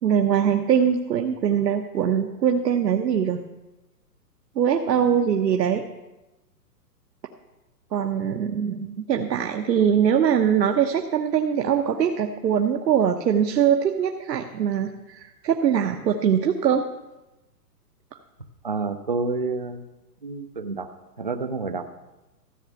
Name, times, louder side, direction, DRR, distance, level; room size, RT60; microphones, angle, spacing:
voice 1, 0.0-3.4 4.5-5.8 7.9-16.9, right 8 dB, 80° right, 4 dB, 1.1 m, -22 dB
voice 2, 18.6-19.8 20.2-20.9 21.2-21.9, right 4 dB, 35° right, 8 dB, 0.4 m, -28 dB
14.0 x 6.8 x 8.2 m, 1.0 s
hypercardioid pair, 165°, 49 cm